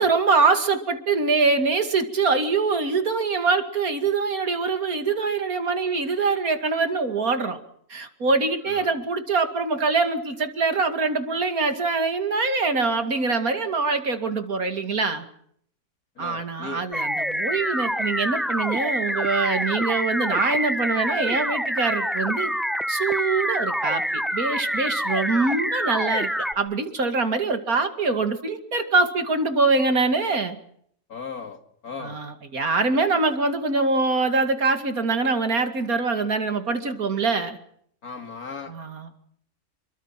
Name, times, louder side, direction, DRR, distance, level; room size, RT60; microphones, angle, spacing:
voice 1, 0.0-7.6 7.9-15.2 16.2-22.5 22.9-26.3 26.6-30.6 32.0-37.6 38.7-39.2, right 4 dB, 80° right, 7 dB, 2.9 m, -24 dB
voice 2, 16.2-16.8 31.1-31.6 31.8-32.2 38.0-38.7, left 4 dB, 90° left, 6 dB, 3.0 m, -37 dB
sound 1, 16.9-26.5, equal, ahead, 1.3 m, -26 dB
28.5 x 23.5 x 5.9 m, 0.66 s
omnidirectional pair, 1.5 m